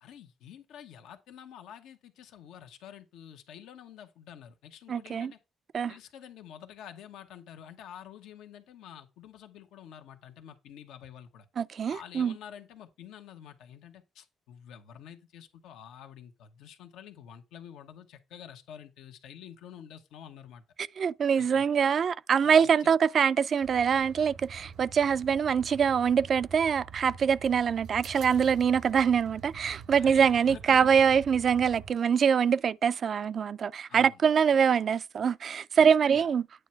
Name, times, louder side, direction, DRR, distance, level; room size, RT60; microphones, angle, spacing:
voice 1, 0.0-5.4 5.9-11.5 11.9-20.6 21.4-21.6 22.4-22.9 29.9-30.8 33.9-34.2 35.8-36.3, left 9 dB, 90° left, 1.1 m, -48 dB
voice 2, 4.9-5.3 5.7-5.9 11.6-12.3 20.8-36.5, right 7 dB, 55° right, 0.3 m, -24 dB
sound 1, 23.6-31.9, right 7 dB, 75° right, 0.8 m, -46 dB
9.2 x 3.2 x 5.7 m
cardioid pair, 90°, 0 cm